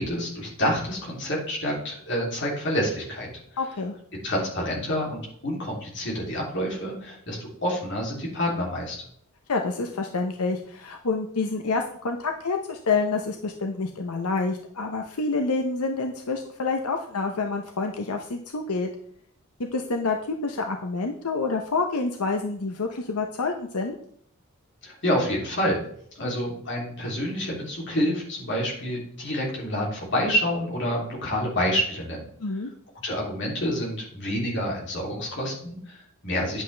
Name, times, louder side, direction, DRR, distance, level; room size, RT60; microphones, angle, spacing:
voice 1, 0.0-3.3 4.2-9.0 24.8-25.8 26.2-32.2 33.0-36.6, equal, 55° left, -2 dB, 3.1 m, -28 dB
voice 2, 3.6-3.9 9.5-18.9 19.7-24.0 32.4-32.7, left 3 dB, 90° left, 3 dB, 0.8 m, -28 dB
9.6 x 8.1 x 3.4 m, 0.64 s
head